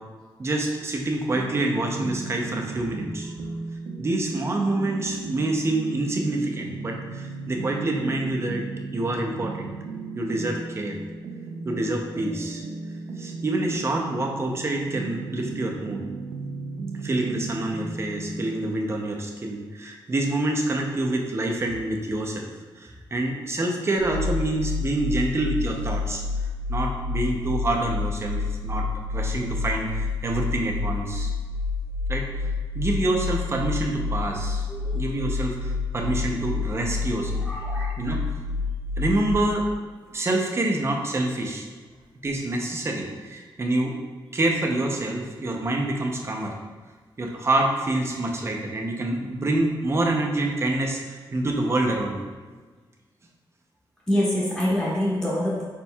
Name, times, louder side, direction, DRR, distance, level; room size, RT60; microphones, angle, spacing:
voice 1, 0.4-3.3 4.0-8.6 8.9-9.7 10.1-10.9 11.6-12.7 13.2-16.0 17.0-22.5 22.8-26.2 26.7-28.8 29.1-31.3 32.1-32.5 32.7-34.7 34.9-38.2 39.0-39.6 40.1-41.7 42.2-44.0 44.3-46.5 47.2-52.3, right 2 dB, 30° right, 1 dB, 0.6 m, -27 dB
sound 1, 1.3-18.7, right 3 dB, 85° right, 0.4 m, -35 dB
sound 2, 24.0-39.3, left 3 dB, 80° left, 0.7 m, -29 dB
voice 2, 34.7-35.0 37.2-37.9 54.1-55.6, left 1 dB, 10° left, -8 dB, 1.1 m, -26 dB
4.4 x 4.3 x 2.2 m, 1.4 s
wide cardioid pair, 115°, 9 cm